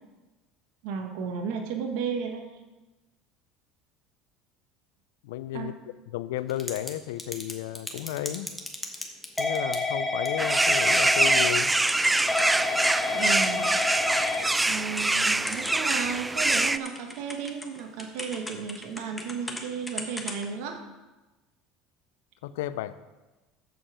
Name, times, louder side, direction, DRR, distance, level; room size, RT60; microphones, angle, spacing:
voice 1, 0.8-2.5 5.5-5.7 13.1-13.8 14.7-20.8, right 6 dB, 75° right, 3 dB, 1.2 m, -33 dB
voice 2, 5.2-5.8 6.1-8.5 9.4-11.8 22.4-23.0, left 14 dB, 85° left, 14 dB, 0.4 m, -33 dB
Typing / Telephone, 6.5-6.9 7.2-16.2 16.5-19.6 19.9-20.4, left 3 dB, 10° left, 1.4 m, -30 dB
Birds In The Forest, 10.4-16.8, right 2 dB, 10° right, 0.3 m, -24 dB
14.0 x 5.2 x 4.9 m, 1.1 s
supercardioid pair, 95°, 0 cm